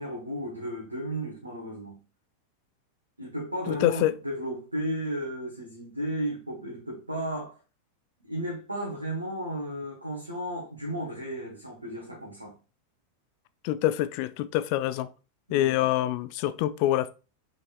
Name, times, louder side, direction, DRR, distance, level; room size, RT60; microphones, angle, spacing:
voice 1, 0.0-2.0 3.2-7.6 8.2-12.6 15.5-15.9, right 1 dB, 85° right, 1.1 m, -34 dB
voice 2, 3.7-4.1 13.6-15.1 15.5-17.1, left 14 dB, 45° left, 0.3 m, -26 dB
5.4 x 3.6 x 2.3 m
figure-of-eight pair, 90°, 0 cm